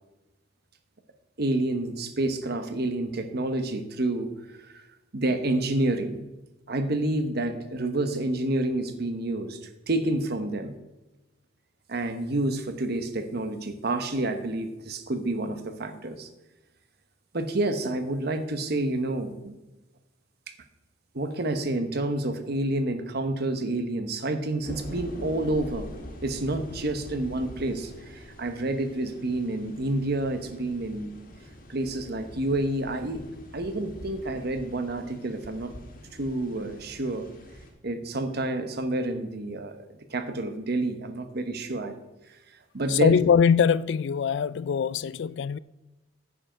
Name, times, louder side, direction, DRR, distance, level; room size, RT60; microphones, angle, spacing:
voice 1, 1.4-4.3 4.6-4.8 5.1-6.2 6.7-9.6 9.9-10.7 11.9-16.3 17.3-19.5 21.1-25.9 26.2-31.1 31.7-33.2 33.5-35.8 36.2-37.3 37.8-41.9 42.7-43.2, right 2 dB, 55° right, 1.1 m, -29 dB
sound 1, 24.6-37.7, equal, 50° left, 1.9 m, -44 dB
voice 2, 42.9-45.6, left 7 dB, 65° left, 0.3 m, -22 dB
9.8 x 7.8 x 5.1 m
head